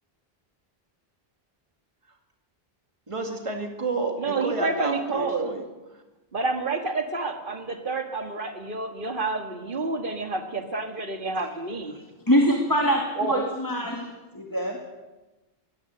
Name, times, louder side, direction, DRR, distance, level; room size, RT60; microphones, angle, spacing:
voice 1, 3.1-6.0 13.2-13.5, right 3 dB, 30° right, 4 dB, 2.2 m, -30 dB
voice 2, 4.2-5.5 6.3-12.0, right 3 dB, 55° right, 6 dB, 2.1 m, -29 dB
voice 3, 12.3-14.8, equal, 20° left, 1 dB, 2.3 m, -24 dB
22.5 x 17.5 x 8.0 m, 1.1 s
omnidirectional pair, 1.0 m